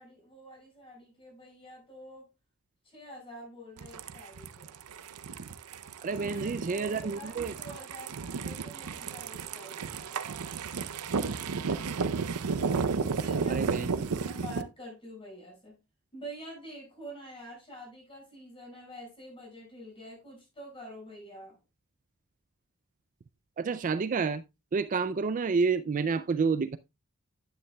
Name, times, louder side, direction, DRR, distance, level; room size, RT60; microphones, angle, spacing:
voice 1, 0.0-2.3 2.8-4.7 6.1-10.2 13.1-15.8 16.1-21.6, equal, 25° left, 6.0 m, -47 dB
sound 1, 3.8-14.6, right 5 dB, 90° right, 0.6 m, -33 dB
voice 2, 6.0-7.5 13.5-14.0 23.6-24.4 24.7-26.8, right 5 dB, 35° right, 0.4 m, -29 dB
10.5 x 9.6 x 2.2 m
head